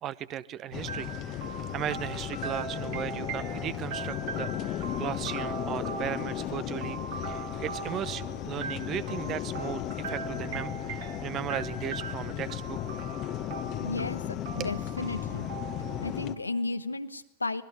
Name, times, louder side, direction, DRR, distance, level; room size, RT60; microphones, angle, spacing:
voice 1, 0.0-1.4 1.7-12.8 14.6-14.7, right 11 dB, 30° right, 18 dB, 0.9 m, -37 dB
sound 1, 0.7-16.4, left 11 dB, 35° left, 1.2 m, -35 dB
sound 2, 0.9-16.7, right 6 dB, 50° right, 3.0 m, -41 dB
voice 2, 13.8-14.2 14.5-15.5 16.0-17.6, left 3 dB, 80° left, 11 dB, 1.2 m, -33 dB
25.0 x 20.5 x 9.4 m, 0.85 s
figure-of-eight pair, 90°, 0 cm